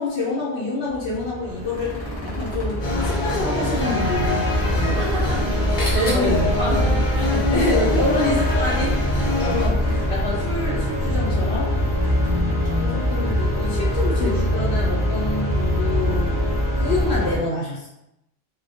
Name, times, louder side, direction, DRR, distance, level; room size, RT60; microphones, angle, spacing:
voice 1, 0.0-5.0 6.1-6.5 7.3-11.8 12.8-16.4 16.8-17.9, left 2 dB, 75° left, -7 dB, 0.9 m, -27 dB
sound 1, 0.9-17.4, equal, 15° left, 0.9 m, -23 dB
sound 2, 1.4-3.6 4.0-4.1 4.5-6.4 7.7-8.7 9.6-10.6 11.7-12.4 12.6-12.8 13.4-13.9 15.1-15.2, equal, 15° right, 0.7 m, -39 dB
sound 3, 2.8-9.7, left 2 dB, 50° left, 0.8 m, -27 dB
voice 2, 4.9-6.3 6.6-7.4 9.4-9.6 12.2-13.0, left 1 dB, 60° right, -5 dB, 0.7 m, -28 dB
2.2 x 2.1 x 2.7 m, 0.84 s
omnidirectional pair, 1.1 m